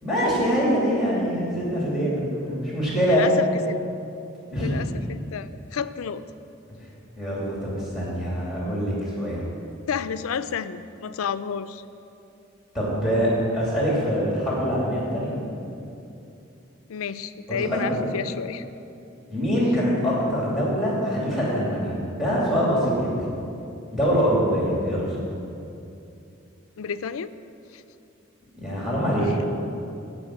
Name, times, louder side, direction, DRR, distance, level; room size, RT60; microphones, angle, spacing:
voice 1, 0.0-3.3 4.5-4.9 7.2-9.4 12.7-15.4 17.5-18.0 19.3-23.1 23.9-25.2 28.5-29.3, equal, ahead, -5 dB, 2.6 m, -24 dB
voice 2, 3.1-3.8 4.5-6.2 9.9-11.8 16.9-18.7 26.8-27.3 27.7-27.8, left 7 dB, 90° left, 13 dB, 0.4 m, -31 dB
15.0 x 5.0 x 6.0 m, 2.7 s
head